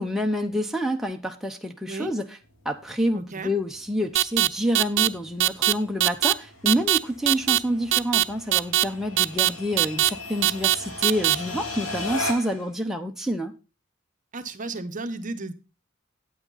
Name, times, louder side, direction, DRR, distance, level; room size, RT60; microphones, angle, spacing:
voice 1, 0.0-2.2 2.6-13.5, equal, ahead, 2 dB, 0.8 m, -28 dB
sound 1, 2.4-12.7, left 2 dB, 80° left, 2.7 m, -38 dB
voice 2, 3.1-3.5 14.3-15.5, right 3 dB, 40° right, 9 dB, 0.9 m, -33 dB
sound 2, 4.1-4.5 4.7-5.1 5.4-5.7 6.0-6.3 6.6-7.0 7.3-7.6 7.9-8.2 8.5-8.8 9.2-9.5 9.8-10.1 10.4-10.7 11.0-11.3, right 15 dB, 65° right, 0.4 m, -20 dB
8.9 x 8.8 x 3.9 m, 0.31 s
head